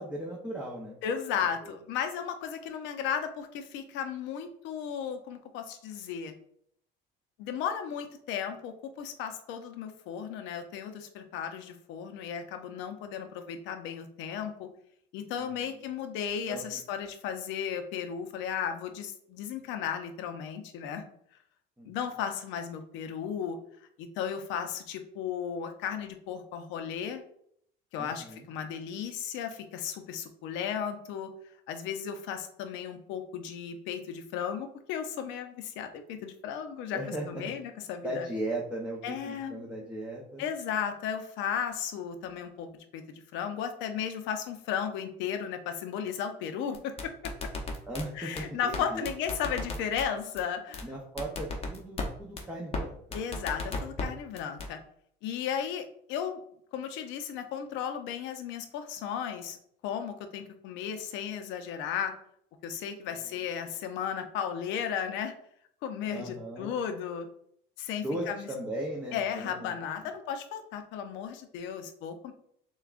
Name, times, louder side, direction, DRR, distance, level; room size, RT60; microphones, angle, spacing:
voice 1, 0.0-1.0 1.6-1.8 15.4-15.5 16.5-16.8 21.8-21.9 28.0-28.5 36.9-37.5 38.0-40.5 47.9-49.1 50.8-53.0 66.1-66.7 68.0-69.8, right 1 dB, 5° right, -3 dB, 0.7 m, -37 dB
voice 2, 1.0-6.3 7.4-14.7 15.1-21.0 21.8-23.6 24.0-27.2 27.9-31.3 31.7-37.0 37.3-38.3 39.0-39.6 40.4-43.0 43.3-47.1 48.1-50.9 53.1-54.8 55.2-56.4 56.7-59.6 59.8-62.1 62.6-65.3 65.8-67.3 67.8-68.5 69.1-72.3, left 8 dB, 75° left, 7 dB, 0.6 m, -35 dB
sound 1, 46.7-48.0 48.4-48.5 48.7-48.8 49.0-50.0 50.4-50.5 50.7-50.8 51.2-52.1 52.4-52.5 52.7-52.8 53.1-54.0 54.4-54.7, left 3 dB, 30° left, 0.7 m, -34 dB
6.7 x 2.4 x 2.4 m, 0.68 s
cardioid pair, 120°, 19 cm